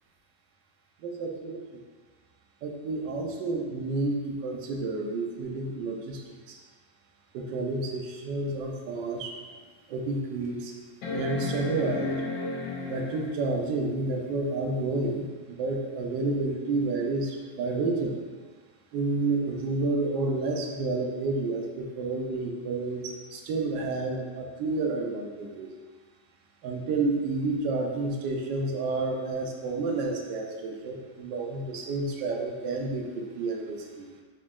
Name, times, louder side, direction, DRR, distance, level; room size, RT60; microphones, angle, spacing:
voice 1, 1.0-1.6 2.6-6.2 6.5-6.6 7.3-9.3 9.9-10.7 11.1-12.1 12.9-18.2 18.9-25.7 26.6-34.1, right 3 dB, 75° right, 1 dB, 1.2 m, -30 dB
sound 1, 8.9-9.0 9.5-9.6 11.0-13.5 15.2-15.3, left 2 dB, 70° left, 1.3 m, -33 dB
4.1 x 2.9 x 3.6 m, 1.5 s
omnidirectional pair, 2.1 m